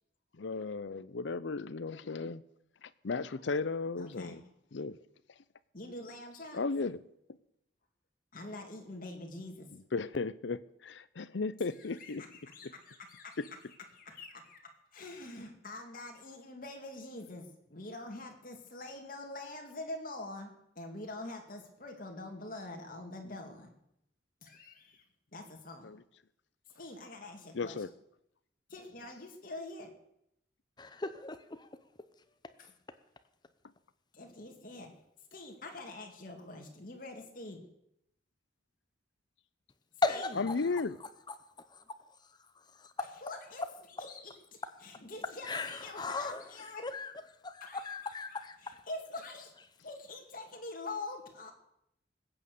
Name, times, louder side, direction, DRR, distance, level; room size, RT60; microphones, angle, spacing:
voice 1, 0.4-2.4 2.8-4.4 4.7-5.0 6.5-7.0 9.9-12.2 12.6-12.7 13.4-13.5 25.8-26.0 27.5-27.9 40.4-41.0, left 4 dB, 75° left, 0.6 m, -35 dB
voice 2, 4.0-4.4 5.7-6.6 8.3-9.7 11.6-23.8 24.4-25.0 25.3-26.0 26.7-27.9 28.7-29.9 32.6-32.7 34.1-35.0 35.3-37.7 40.1-40.5 43.0-46.9 47.6-49.5 49.8-51.5, left 2 dB, 50° left, 2.3 m, -45 dB
voice 3, 30.8-31.7 40.0-40.5 42.8-42.9 45.5-47.1 47.4-48.8, left 3 dB, 25° left, 0.7 m, -36 dB
20.0 x 9.0 x 6.7 m
head